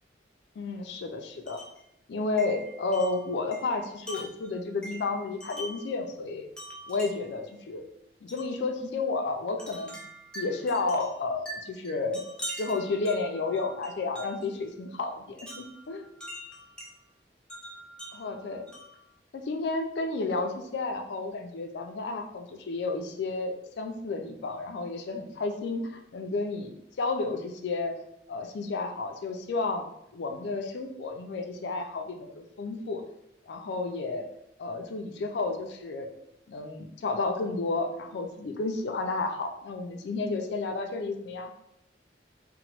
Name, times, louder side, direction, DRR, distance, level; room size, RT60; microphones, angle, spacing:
voice 1, 0.6-1.6 2.1-6.5 6.9-7.8 8.2-10.0 10.3-12.2 12.6-16.1 18.1-18.7 19.3-28.0 28.3-29.8 30.1-33.0 33.5-34.2 34.6-36.1 36.5-41.5, left 3 dB, 70° left, 4 dB, 0.4 m, -32 dB
Wind chime, 1.5-1.8 2.4-5.9 6.6-7.4 8.3-8.5 9.6-14.5 15.4-16.9 17.5-19.0, right 1 dB, 5° left, 0.4 m, -43 dB
2.9 x 2.1 x 2.9 m, 0.78 s
head